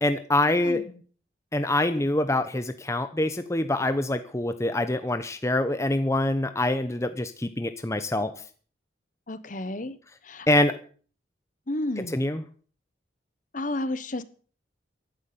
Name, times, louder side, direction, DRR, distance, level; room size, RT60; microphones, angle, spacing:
voice 1, 0.0-0.8 1.5-8.3 10.5-10.8 12.0-12.4, left 1 dB, 15° left, 9 dB, 0.8 m, -25 dB
voice 2, 9.3-10.0 10.3-10.5 11.7-12.2 13.5-14.2, left 1 dB, 45° left, 14 dB, 1.2 m, -31 dB
14.5 x 11.5 x 6.9 m, 0.43 s
head